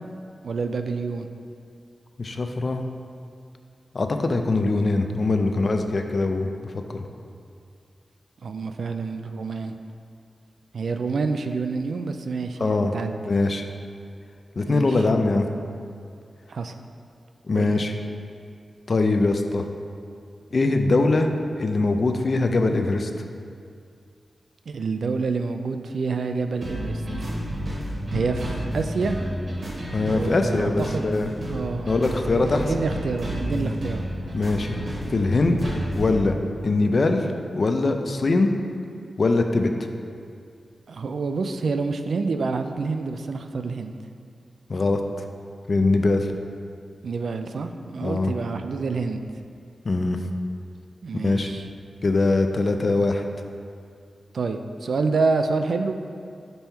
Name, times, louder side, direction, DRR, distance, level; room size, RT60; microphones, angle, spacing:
voice 1, 0.4-1.3 8.4-9.7 10.7-13.2 14.6-15.0 16.5-16.7 17.5-17.7 24.7-27.3 28.1-29.2 30.1-31.1 31.5-31.9 32.3-34.1 40.9-44.0 47.0-49.2 51.0-51.7 54.3-55.9, right 4 dB, 80° right, 7 dB, 0.3 m, -27 dB
voice 2, 2.2-2.8 3.9-7.1 12.6-12.9 13.3-13.6 14.6-15.5 17.5-17.9 18.9-19.6 20.5-21.3 21.6-23.1 29.9-31.3 31.9-32.7 34.3-34.8 35.1-35.6 35.9-36.4 36.6-37.3 37.5-38.5 39.2-39.7 44.7-45.0 45.7-46.3 48.0-48.3 49.8-50.2 51.2-51.5 52.0-53.2, left 3 dB, 50° left, 5 dB, 0.4 m, -22 dB
sound 1, 26.6-36.2, equal, 55° right, 1.4 m, -30 dB
5.3 x 4.5 x 4.4 m, 2.3 s
wide cardioid pair, 125°, 0 cm